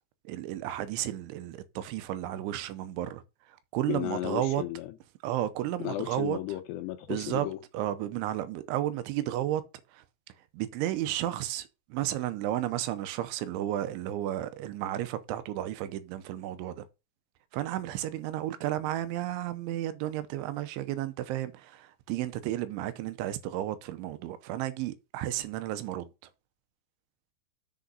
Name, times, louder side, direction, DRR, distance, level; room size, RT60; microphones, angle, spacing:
voice 1, 0.2-3.2 3.5-4.6 5.2-6.4 7.1-7.5 7.7-9.6 9.9-10.0 10.5-16.9 17.5-26.1, right 13 dB, 85° right, 3.2 m, -33 dB
voice 2, 3.9-4.9 5.8-7.6, left 14 dB, 80° left, 2.6 m, -34 dB
7.1 x 6.3 x 5.4 m
omnidirectional pair, 5.4 m